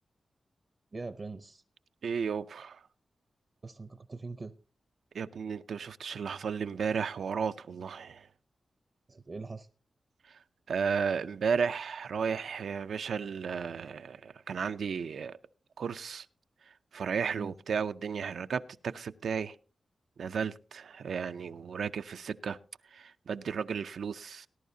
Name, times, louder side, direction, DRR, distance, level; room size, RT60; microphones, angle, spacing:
voice 1, 0.9-1.6 3.6-4.5 9.1-9.7 17.4-17.5, right 3 dB, 40° right, 0.6 m, -42 dB
voice 2, 2.0-2.8 5.1-8.3 10.7-15.4 15.8-16.3 16.9-19.5 20.2-22.6 22.9-24.5, right 6 dB, 90° right, 0.5 m, -34 dB
19.0 x 11.0 x 2.7 m
wide cardioid pair, 125°, 0 cm